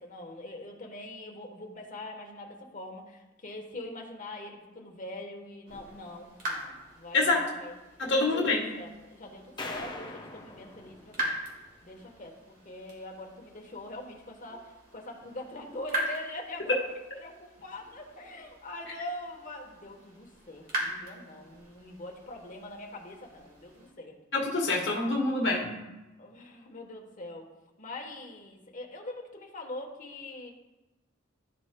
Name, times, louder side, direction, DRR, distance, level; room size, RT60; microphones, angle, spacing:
voice 1, 0.0-7.7 8.2-11.3 11.8-16.8 17.2-24.2 26.2-27.5 27.8-30.5, left 1 dB, 40° left, 1 dB, 1.1 m, -43 dB
sound 1, 5.7-23.9, right 1 dB, 45° right, 1.7 m, -41 dB
voice 2, 7.1-7.4 8.0-8.7 24.3-25.8, left 2 dB, 60° left, -1 dB, 1.2 m, -26 dB
sound 2, 9.6-11.9, left 2 dB, 20° left, 0.7 m, -42 dB
13.0 x 4.9 x 2.2 m, 1.1 s
head